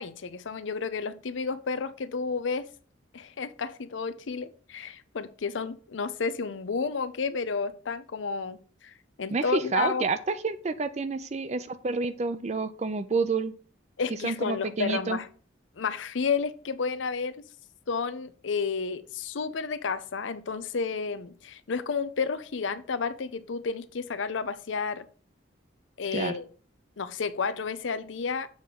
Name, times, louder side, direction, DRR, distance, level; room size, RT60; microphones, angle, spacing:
voice 1, 0.0-2.7 3.1-10.1 14.0-15.3 15.8-17.4 17.9-25.1 26.0-26.5 27.0-28.5, left 5 dB, 85° left, 0.6 m, -31 dB
voice 2, 9.3-13.5 14.2-15.2 26.1-26.4, right 3 dB, 35° right, 0.5 m, -29 dB
7.3 x 3.7 x 5.8 m
head